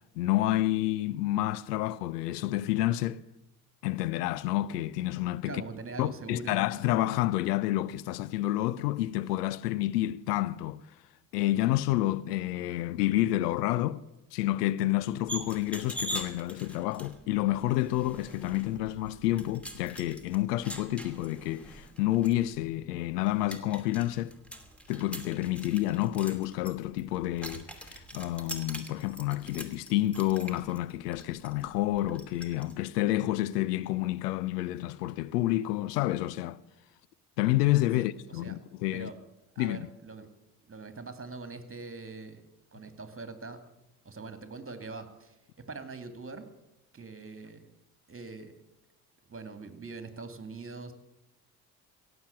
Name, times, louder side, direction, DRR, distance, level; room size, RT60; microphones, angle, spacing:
voice 1, 0.2-3.2 3.8-5.6 6.0-10.8 11.3-14.0 14.3-24.3 24.9-36.6 37.4-39.1 39.6-39.8, left 15 dB, 85° left, 0.6 m, -29 dB
voice 2, 5.4-6.7 37.9-38.6 38.9-39.1 39.5-40.3 40.6-42.4 42.7-43.6 44.0-46.5 46.9-47.7 48.1-48.5 49.3-50.9, right 3 dB, 30° right, 2.5 m, -43 dB
sound 1, 15.3-32.7, right 1 dB, 5° left, 2.8 m, -44 dB
17.0 x 8.1 x 9.8 m
hypercardioid pair, 50°, 47 cm